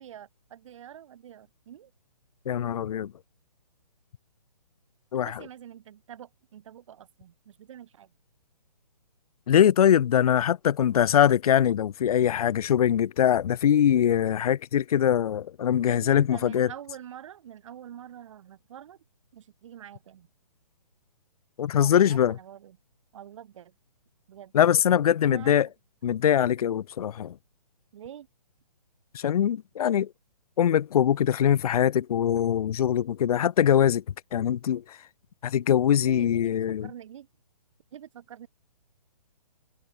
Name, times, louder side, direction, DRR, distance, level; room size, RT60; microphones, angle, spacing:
voice 1, 0.0-1.9 5.1-8.1 15.8-19.0 19.3-20.3 21.8-22.8 23.1-23.7 24.3-24.5 25.2-25.5 27.9-28.3 36.0-37.3 37.9-38.5, right 10 dB, 45° right, 3.3 m, -45 dB
voice 2, 2.5-3.1 5.1-5.4 9.5-16.7 21.6-22.4 24.5-25.7 26.0-27.3 29.1-30.1 30.6-34.0 34.3-35.0 35.4-36.9, left 9 dB, 60° left, 0.5 m, -22 dB
hypercardioid pair, 155°, 21 cm